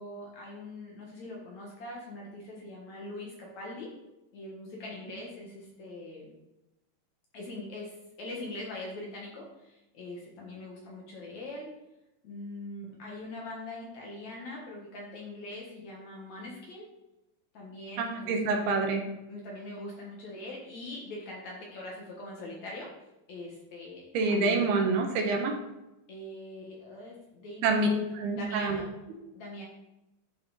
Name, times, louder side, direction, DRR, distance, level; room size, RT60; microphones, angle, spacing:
voice 1, 0.0-4.0 4.3-6.3 7.3-11.7 12.2-16.9 17.5-18.8 19.3-22.9 23.3-24.8 26.1-28.9 29.3-29.6, left 2 dB, 55° left, -2 dB, 2.4 m, -42 dB
voice 2, 18.0-19.0 24.1-25.6 27.6-27.9 28.1-28.8, right 3 dB, 75° right, 3 dB, 3.0 m, -27 dB
11.0 x 5.7 x 4.1 m, 0.96 s
omnidirectional pair, 4.6 m